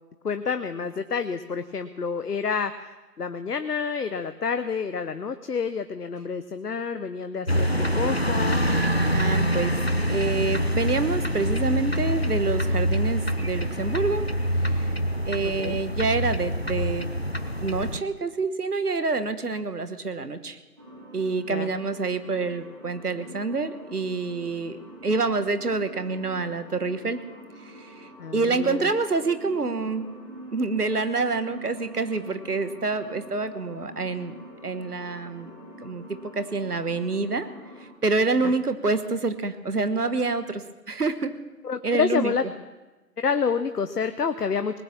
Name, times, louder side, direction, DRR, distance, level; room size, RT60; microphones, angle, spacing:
voice 1, 0.2-2.7 3.2-8.6 15.6-15.8 21.5-21.7 28.2-28.9 41.6-42.4 43.2-44.8, left 5 dB, 75° left, 10 dB, 0.9 m, -28 dB
sound 1, 7.5-18.0, equal, 40° left, 0.5 m, -25 dB
voice 2, 9.1-9.8 10.1-14.3 14.6-14.9 15.3-17.1 17.6-20.6 21.1-27.2 27.6-30.1 30.5-34.3 34.6-35.5 35.8-37.5 37.8-41.3 41.8-42.3, right 3 dB, 70° right, 11 dB, 1.4 m, -27 dB
sound 2, 20.8-37.9, right 1 dB, 10° right, 1.5 m, -45 dB
19.5 x 8.8 x 7.1 m, 1.1 s
figure-of-eight pair, 170°, 48 cm